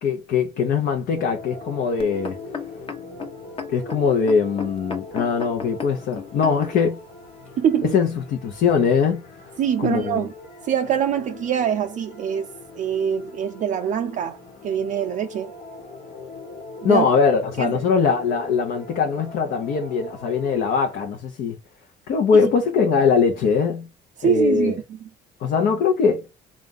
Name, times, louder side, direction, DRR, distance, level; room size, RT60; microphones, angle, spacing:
voice 1, 0.0-2.4 3.7-7.0 7.8-9.2 9.8-10.3 16.8-21.6 22.1-23.9 24.2-24.8 25.4-26.3, left 5 dB, 65° left, 0.8 m, -21 dB
sound 1, 1.2-21.1, left 3 dB, 85° left, 1.5 m, -41 dB
sound 2, 2.0-6.9 7.6-7.7, left 5 dB, 30° left, 0.9 m, -34 dB
voice 2, 7.6-7.9 9.6-10.3 10.6-12.5 12.7-14.4 14.6-15.5 16.8-17.1 17.6-17.7 24.2-24.7, right 8 dB, 50° right, 0.4 m, -23 dB
3.7 x 2.4 x 3.9 m
cardioid pair, 110°, 17 cm